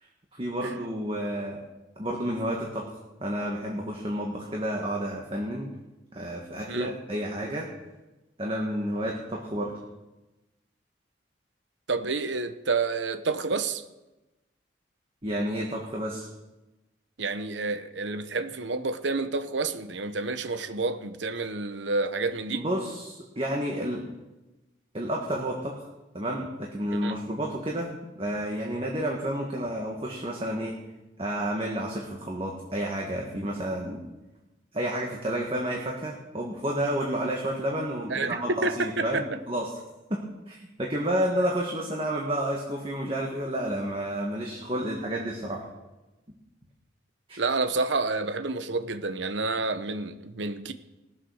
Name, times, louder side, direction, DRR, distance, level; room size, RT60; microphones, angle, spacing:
voice 1, 0.4-1.6 2.0-2.8 3.2-5.7 6.1-7.7 8.4-9.7 15.2-16.3 22.5-24.0 24.9-25.7 26.1-30.7 31.2-34.0 34.7-39.7 40.1-45.7 47.3-47.4, right 1 dB, 30° right, 1.7 m, -30 dB
voice 2, 11.9-13.8 17.2-22.6 26.9-27.2 38.1-39.2 47.4-50.7, right 3 dB, 85° right, 1.0 m, -29 dB
19.0 x 7.6 x 6.4 m
head